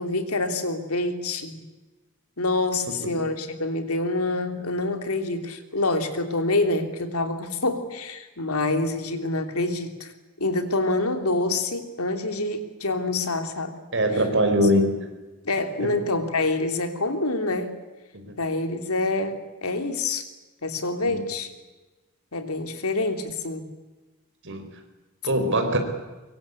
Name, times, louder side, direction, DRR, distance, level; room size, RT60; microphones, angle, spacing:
voice 1, 0.0-1.6 2.4-10.1 10.4-13.8 15.4-17.7 18.4-20.3 20.6-21.5 22.3-23.6, left 2 dB, 75° left, 7 dB, 3.1 m, -26 dB
voice 2, 13.9-14.9 15.8-15.9 18.1-18.3 21.0-21.2 24.4-24.7 25.2-25.8, equal, 55° right, 6 dB, 4.9 m, -22 dB
24.0 x 23.5 x 8.5 m, 1.2 s
head